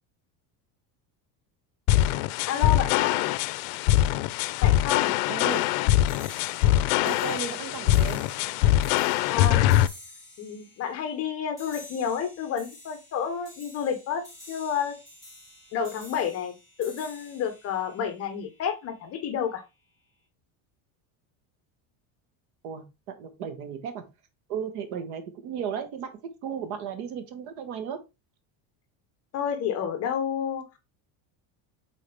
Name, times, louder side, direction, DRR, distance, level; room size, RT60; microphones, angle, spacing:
sound 1, 1.9-9.9, left 13 dB, 90° left, 0.6 m, -23 dB
voice 1, 2.5-3.3 4.6-5.1 9.3-9.7 10.4-15.0 15.7-16.5 16.8-19.6 29.3-30.8, left 8 dB, 35° left, 8 dB, 1.0 m, -30 dB
voice 2, 5.3-5.7 7.0-8.2 22.6-24.0 24.5-26.1 26.4-28.0, right 7 dB, 85° right, 8 dB, 1.6 m, -35 dB
sound 2, 5.5-18.9, left 1 dB, 10° right, 3.2 m, -49 dB
7.4 x 3.9 x 3.3 m, 0.25 s
cardioid pair, 175°, 43 cm